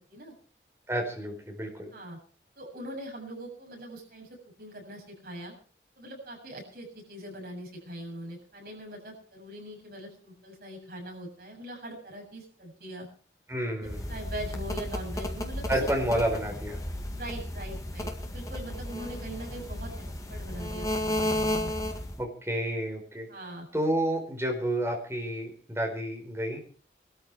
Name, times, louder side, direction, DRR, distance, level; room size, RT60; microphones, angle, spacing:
voice 1, 0.9-1.9 13.5-14.2 15.7-16.8 22.2-23.3 23.7-26.6, right 1 dB, 15° right, 1 dB, 4.7 m, -30 dB
voice 2, 2.6-4.3 4.6-5.5 6.0-13.1 13.8-15.8 17.1-19.9 20.3-21.7 23.3-23.7, right 1 dB, 60° right, -1 dB, 7.7 m, -42 dB
sound 1, 13.8-22.2, left 1 dB, 20° left, 1.9 m, -33 dB
20.5 x 13.0 x 4.7 m, 0.41 s
head